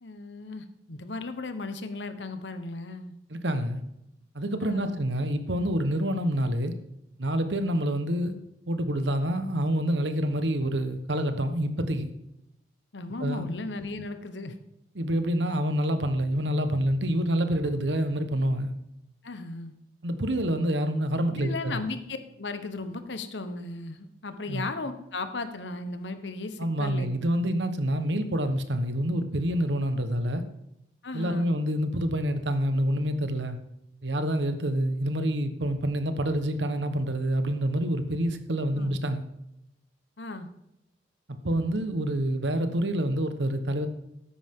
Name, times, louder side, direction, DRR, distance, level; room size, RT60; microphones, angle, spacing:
voice 1, 0.0-3.1 4.6-5.0 12.9-14.5 19.2-19.7 21.3-27.1 31.0-31.5 38.8-38.9 40.2-40.5, left 3 dB, 75° left, 9 dB, 1.2 m, -36 dB
voice 2, 3.3-3.8 4.3-6.7 7.2-8.3 8.7-12.1 13.2-13.5 15.0-18.7 20.0-21.8 24.5-24.7 26.6-30.4 31.1-33.6 34.0-39.2 41.4-43.9, equal, 75° right, 9 dB, 1.2 m, -27 dB
13.0 x 10.0 x 3.8 m, 0.83 s
head